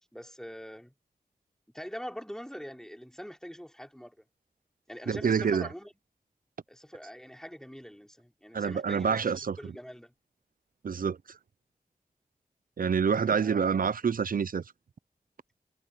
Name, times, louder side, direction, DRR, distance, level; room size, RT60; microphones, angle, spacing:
voice 1, 0.1-0.9 1.7-4.2 4.9-5.9 6.7-9.3 9.6-10.1 13.3-13.7, equal, 5° left, 3.4 m, -43 dB
voice 2, 5.1-5.7 8.5-9.6 10.8-11.4 12.8-14.6, right 6 dB, 75° right, 0.7 m, -27 dB
cardioid pair, 45°, 15 cm